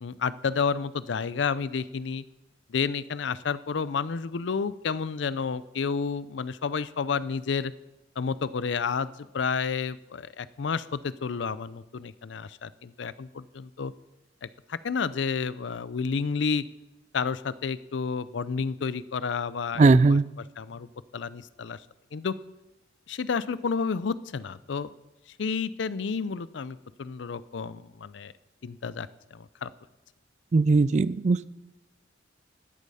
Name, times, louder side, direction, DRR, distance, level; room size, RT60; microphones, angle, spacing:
voice 1, 0.0-2.2 2.7-7.7 8.2-13.9 14.4-16.6 17.1-20.2 20.6-20.9 21.1-21.8 22.1-22.3 23.1-24.9 25.4-28.3 28.6-29.7, left 5 dB, 75° left, 17 dB, 0.5 m, -30 dB
voice 2, 19.8-20.2 30.5-31.5, right 3 dB, 40° right, 18 dB, 0.3 m, -19 dB
12.5 x 8.3 x 5.6 m, 0.98 s
head